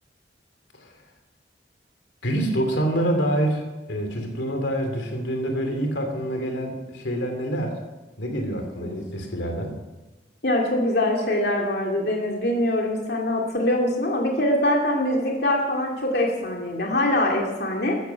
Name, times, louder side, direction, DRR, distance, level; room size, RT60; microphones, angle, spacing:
voice 1, 2.2-3.6 3.9-7.8 8.2-9.7, right 1 dB, 90° left, 4 dB, 2.8 m, -26 dB
voice 2, 10.4-18.0, left 1 dB, 65° left, -1 dB, 2.5 m, -23 dB
14.0 x 14.0 x 5.8 m, 1.1 s
head